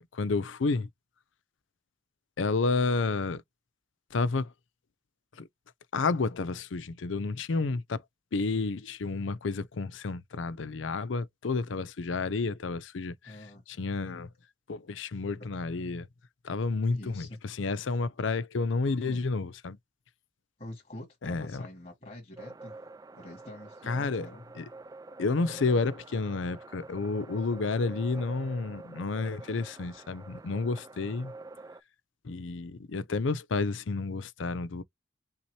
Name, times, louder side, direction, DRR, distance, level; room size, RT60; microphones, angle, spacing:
voice 1, 0.1-0.9 2.4-3.4 4.1-4.5 5.4-5.5 5.9-8.0 8.3-13.4 13.7-14.3 14.7-16.1 16.4-19.8 21.2-21.6 23.9-24.3 24.6-24.7 25.2-31.3 32.2-34.8, left 3 dB, 85° left, 0.5 m, -30 dB
voice 2, 13.2-13.6 16.9-17.4 18.8-19.2 20.6-22.7 23.1-24.4 28.1-28.2, left 1 dB, 45° left, 2.3 m, -46 dB
sound 1, 22.4-31.8, right 3 dB, 20° right, 0.3 m, -47 dB
5.5 x 2.8 x 3.2 m
head